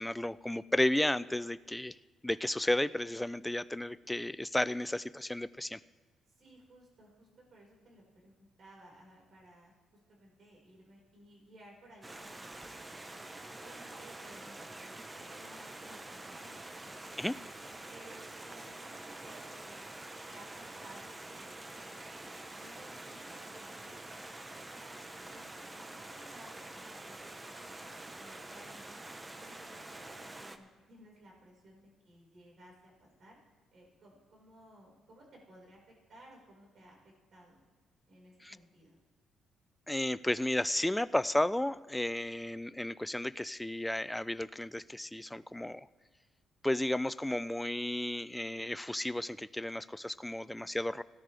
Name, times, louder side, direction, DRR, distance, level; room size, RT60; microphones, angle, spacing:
voice 1, 0.0-2.0 2.2-5.8 17.2-17.4 38.4-38.6 39.9-45.9 46.6-51.0, left 1 dB, 5° left, 15 dB, 0.3 m, -33 dB
voice 2, 6.3-9.7 10.1-13.2 13.6-17.4 17.8-19.9 20.3-22.2 22.6-25.0 25.3-29.0 29.4-33.4 33.7-37.6 38.1-39.0, right 1 dB, 55° right, -2 dB, 4.9 m, -58 dB
Stream, 12.0-30.6, right 2 dB, 20° right, 0.9 m, -47 dB
17.5 x 11.5 x 3.4 m, 1.4 s
cardioid pair, 90°, 0 cm